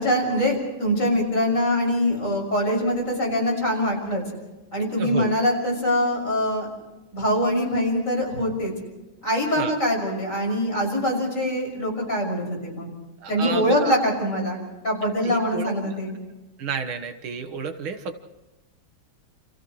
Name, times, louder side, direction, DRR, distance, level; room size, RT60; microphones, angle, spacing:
voice 1, 0.0-4.2 4.7-6.7 7.1-8.7 9.2-12.9 13.3-14.6 14.8-16.1, equal, 35° left, 0 dB, 6.6 m, -23 dB
voice 2, 5.0-5.3 9.6-9.7 13.2-14.0 15.2-16.0 16.6-18.2, right 5 dB, 80° right, 7 dB, 2.2 m, -31 dB
29.5 x 28.5 x 3.2 m, 1.1 s
omnidirectional pair, 2.2 m